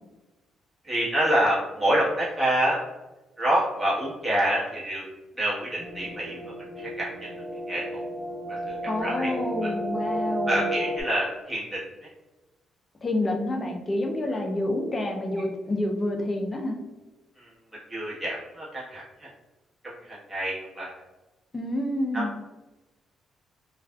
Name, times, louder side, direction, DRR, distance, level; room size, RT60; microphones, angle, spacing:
voice 1, 0.8-2.8 3.4-5.0 5.4-6.4 6.8-7.1 7.7-7.8 8.5-8.7 9.0-9.3 10.5-12.1 17.4-17.5 17.9-19.3 19.8-20.9 22.1-22.2, right 1 dB, 20° right, -7 dB, 1.2 m, -27 dB
sound 1, 5.8-11.0, right 1 dB, 5° left, 1.2 m, -32 dB
voice 2, 8.9-10.6 13.0-16.8 21.5-22.3, left 1 dB, 30° left, 2 dB, 0.5 m, -28 dB
2.4 x 2.4 x 2.2 m, 1.1 s
cardioid pair, 90°, 0 cm